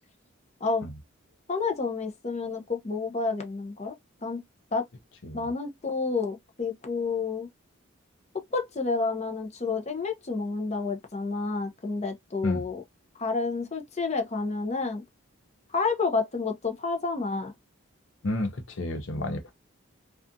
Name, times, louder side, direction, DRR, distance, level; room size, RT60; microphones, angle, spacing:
voice 1, 1.5-4.0 4.2-4.4 4.7-4.8 5.3-7.5 8.5-12.8 13.2-15.0 15.7-17.5, left 4 dB, 30° left, 0.5 m, -29 dB
voice 2, 18.2-19.5, left 2 dB, 70° left, 0.6 m, -30 dB
2.4 x 2.4 x 2.6 m
head